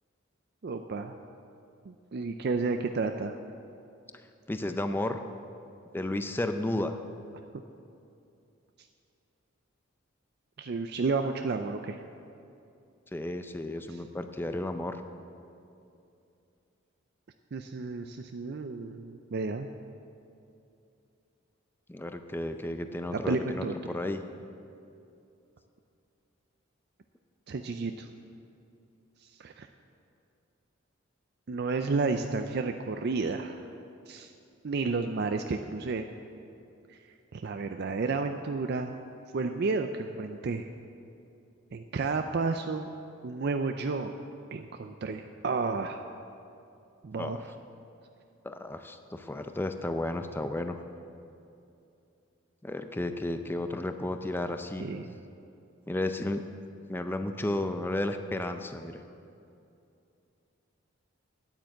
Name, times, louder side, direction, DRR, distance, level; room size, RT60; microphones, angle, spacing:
voice 1, 0.6-1.2 1.9-3.4 10.6-12.0 13.9-14.0 17.5-19.7 23.1-23.7 27.5-28.1 29.2-29.7 31.5-33.7 34.1-34.3 34.6-36.1 36.9-37.0 37.3-39.0 39.3-40.7 41.7-42.9 43.2-44.1 44.5-46.0 47.0-47.4 54.8-55.1, right 4 dB, 50° right, 6 dB, 0.4 m, -31 dB
voice 2, 4.5-5.2 5.9-7.0 13.1-15.0 21.9-24.2 47.2-47.4 48.4-50.8 52.6-54.9 55.9-56.4 56.9-59.0, left 1 dB, 10° left, 7 dB, 0.4 m, -33 dB
9.5 x 9.0 x 7.6 m, 2.7 s
head